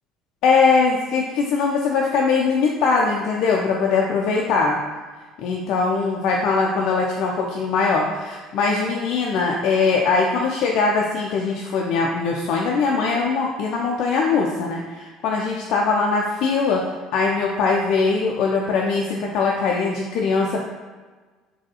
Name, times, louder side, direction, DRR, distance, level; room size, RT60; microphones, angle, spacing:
voice 1, 0.4-4.8 5.4-16.8 17.1-20.6, left 4 dB, 55° left, -1 dB, 0.3 m, -21 dB
4.0 x 2.3 x 2.7 m, 1.4 s
figure-of-eight pair, 60°, 0 cm